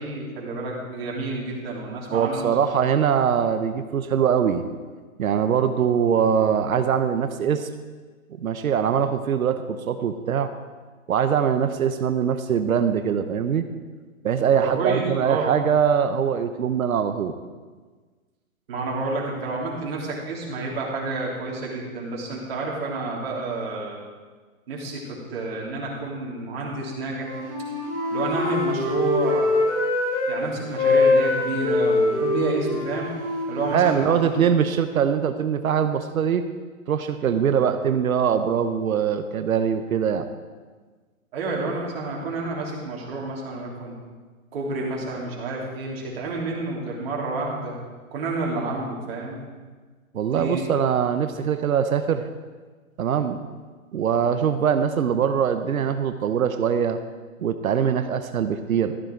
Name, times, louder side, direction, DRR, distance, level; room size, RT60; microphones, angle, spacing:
voice 1, 0.0-2.5 14.5-15.5 18.7-24.0 24.7-27.4 28.1-29.6 30.3-33.1 33.5-34.2 41.3-43.9 44.5-47.8 48.1-49.4 50.2-50.6, right 2 dB, 45° right, -3 dB, 3.4 m, -29 dB
voice 2, 2.1-4.6 5.2-7.7 8.4-10.5 11.1-13.7 14.2-17.3 33.7-36.4 36.9-40.3 50.1-52.2 53.0-53.4 53.9-57.0 57.4-58.9, right 8 dB, 75° right, 9 dB, 0.9 m, -22 dB
Wind instrument woodwind instrument, 27.1-30.4 30.7-34.4, left 2 dB, 15° left, 3.4 m, -24 dB
14.0 x 8.9 x 4.6 m, 1.4 s
hypercardioid pair, 165°, 42 cm